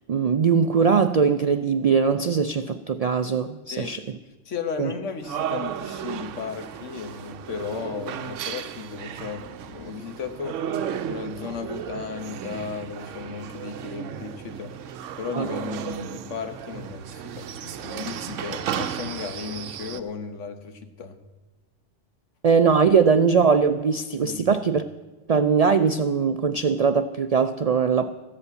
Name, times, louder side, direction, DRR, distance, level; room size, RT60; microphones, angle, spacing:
voice 1, 0.1-4.0 4.8-4.9 15.4-15.5 22.4-24.8 25.3-28.1, right 6 dB, 65° right, 10 dB, 0.3 m, -21 dB
voice 2, 4.4-10.6 11.1-14.7 15.2-21.2 24.2-24.6, left 6 dB, 80° left, 8 dB, 1.5 m, -35 dB
sound 1, 5.2-20.0, right 9 dB, 90° right, 1.0 m, -34 dB
14.5 x 8.1 x 8.2 m, 1.2 s
omnidirectional pair, 1.2 m